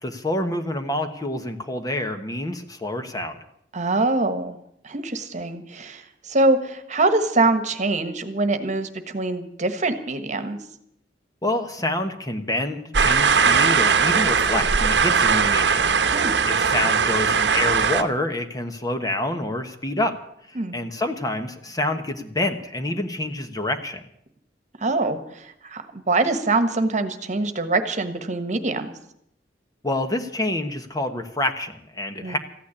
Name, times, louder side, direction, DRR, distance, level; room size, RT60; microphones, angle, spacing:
voice 1, 0.0-3.4 11.4-16.0 16.5-20.2 20.5-24.0 29.8-32.4, left 1 dB, 20° left, 7 dB, 1.2 m, -27 dB
voice 2, 3.7-4.6 4.8-10.6 16.0-16.3 20.5-20.8 24.8-28.9 32.2-32.4, right 2 dB, 40° right, 9 dB, 1.4 m, -24 dB
sound 1, 12.9-18.0, right 5 dB, 70° right, 1.0 m, -19 dB
14.5 x 9.5 x 9.8 m, 0.73 s
head